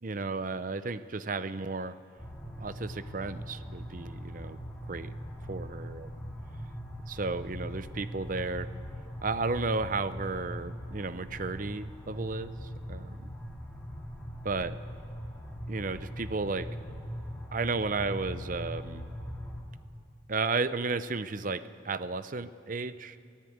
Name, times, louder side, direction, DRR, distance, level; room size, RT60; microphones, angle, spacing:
voice 1, 0.0-1.9 2.6-4.6 4.9-5.1 5.5-6.1 7.1-8.7 9.2-13.3 14.4-14.8 15.7-16.7 17.5-19.0 20.3-23.2, right 3 dB, 40° right, 13 dB, 0.6 m, -33 dB
sound 1, 2.2-19.6, equal, 5° left, 2.3 m, -41 dB
24.0 x 16.0 x 8.7 m, 2.4 s
head